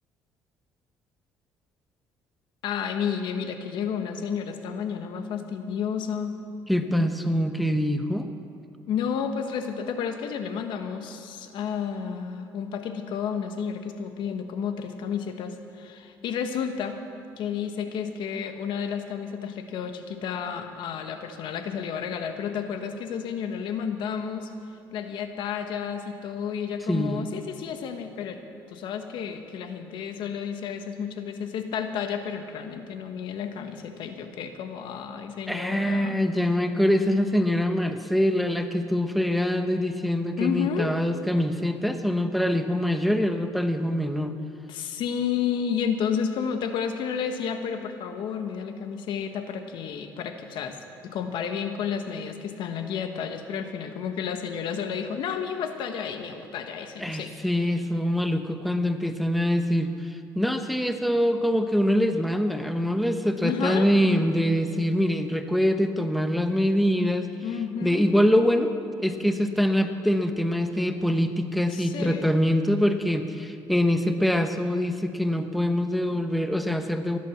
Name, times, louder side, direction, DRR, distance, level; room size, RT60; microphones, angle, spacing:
voice 1, 2.6-6.4 8.9-17.0 17.4-24.5 24.9-28.4 28.7-36.1 40.4-41.0 44.7-50.8 51.0-57.6 63.4-63.9 67.4-68.1 71.7-72.3, left 7 dB, 70° left, 7 dB, 1.3 m, -31 dB
voice 2, 6.7-8.3 26.9-27.3 35.5-44.4 57.0-67.3 67.8-68.7 69.0-77.2, equal, ahead, 7 dB, 0.9 m, -24 dB
15.5 x 11.0 x 7.2 m, 2.5 s
cardioid pair, 90°, 8 cm